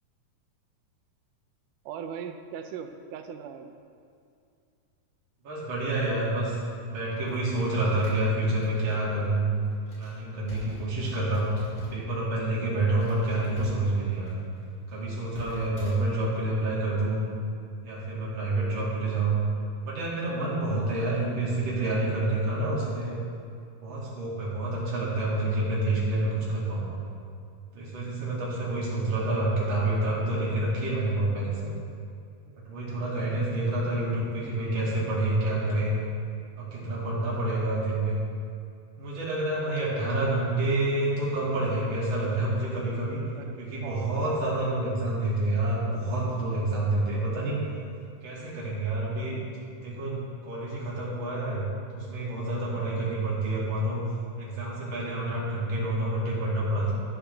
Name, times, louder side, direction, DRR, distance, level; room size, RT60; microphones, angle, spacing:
voice 1, 1.9-3.7 27.8-28.0 32.5-32.7 43.3-44.4, right 7 dB, 80° right, 7 dB, 2.2 m, -40 dB
voice 2, 5.4-9.6 10.0-11.5 11.9-14.4 14.9-17.3 17.8-19.4 19.8-23.2 23.8-27.0 27.7-31.7 32.6-36.0 36.6-38.2 39.0-43.2 43.6-47.6 48.2-49.4 49.7-54.0 54.4-56.9, right 2 dB, 40° right, -7 dB, 3.1 m, -28 dB
sound 1, 6.5-12.1 12.4-12.6 13.0-15.9, left 2 dB, 45° left, 3.5 m, -46 dB
11.5 x 11.5 x 3.4 m, 2.3 s
omnidirectional pair, 3.7 m